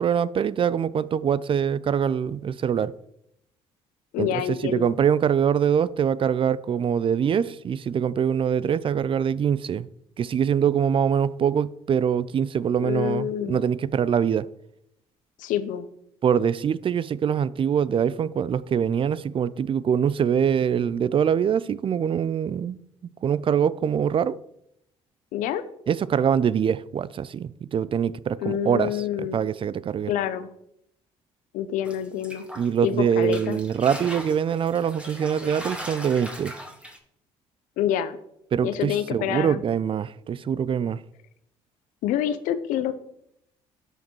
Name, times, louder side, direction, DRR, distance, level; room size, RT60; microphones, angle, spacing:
voice 1, 0.0-2.9 4.2-9.9 10.2-14.5 16.2-22.8 23.2-24.4 25.9-28.9 29.2-30.1 32.6-36.5 38.5-41.0, right 8 dB, 40° right, 0.4 m, -24 dB
voice 2, 4.1-4.9 12.8-13.6 15.4-15.9 25.3-25.6 28.4-29.4 30.1-30.5 31.5-32.4 32.8-33.6 37.8-38.2 38.6-39.6 42.0-42.9, left 10 dB, 70° left, 0.6 m, -27 dB
sound 1, 31.8-32.9 33.2-37.0, equal, 10° right, 1.6 m, -38 dB
12.5 x 5.0 x 3.1 m
hypercardioid pair, 60°, 14 cm